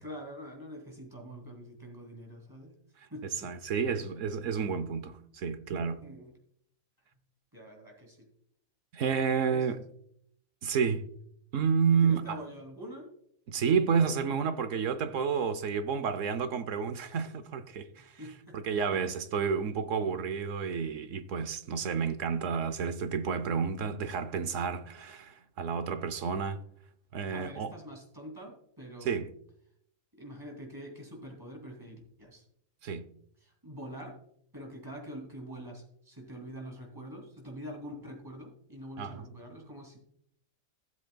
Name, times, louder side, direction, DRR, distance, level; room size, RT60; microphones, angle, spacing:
voice 1, 0.0-2.7 3.1-3.5 6.0-6.3 7.5-8.3 9.4-9.7 11.9-13.1 18.0-18.6 18.9-19.0 27.3-29.2 30.2-32.4 33.4-34.2 34.5-40.0, equal, 15° right, 2.6 m, -45 dB
voice 2, 3.4-6.1 8.9-9.8 10.6-11.1 11.5-12.4 13.5-18.1 18.5-26.6 27.1-27.7 29.0-29.3 32.8-33.1 39.0-39.2, right 6 dB, 65° right, 1.0 m, -30 dB
16.5 x 7.6 x 2.3 m
omnidirectional pair, 1.5 m